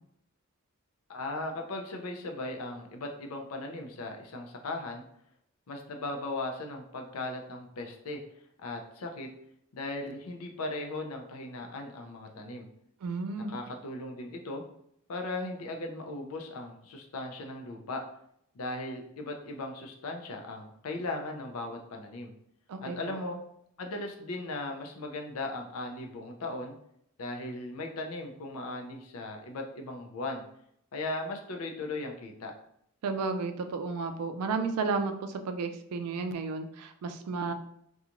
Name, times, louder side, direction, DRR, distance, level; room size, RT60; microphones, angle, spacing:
voice 1, 1.1-5.0 5.7-8.2 8.6-9.3 9.7-12.7 13.5-14.6 15.1-18.0 18.5-22.3 22.8-23.4 23.8-26.7 27.2-30.4 30.9-32.5, left 2 dB, 75° left, 3 dB, 0.5 m, -37 dB
voice 2, 13.0-13.5 22.7-23.2 33.0-37.5, right 4 dB, 90° right, 7 dB, 0.4 m, -33 dB
2.9 x 2.3 x 2.5 m, 0.73 s
head